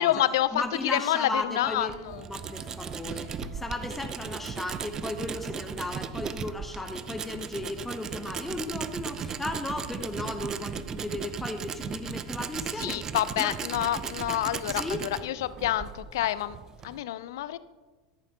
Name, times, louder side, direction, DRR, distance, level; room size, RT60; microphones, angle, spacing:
voice 1, 0.0-2.3 3.0-3.4 12.8-16.6 16.8-17.6, left 13 dB, 65° left, 16 dB, 0.5 m, -28 dB
voice 2, 0.5-2.0 2.3-13.1 13.4-13.5 14.7-15.1, left 2 dB, 10° left, 6 dB, 0.9 m, -35 dB
Tools, 1.6-17.0, right 7 dB, 25° right, 0.5 m, -37 dB
Wind instrument woodwind instrument, 1.8-5.0, right 3 dB, 55° right, 3.3 m, -53 dB
13.5 x 10.5 x 2.9 m, 1.3 s
figure-of-eight pair, 85°, 2 cm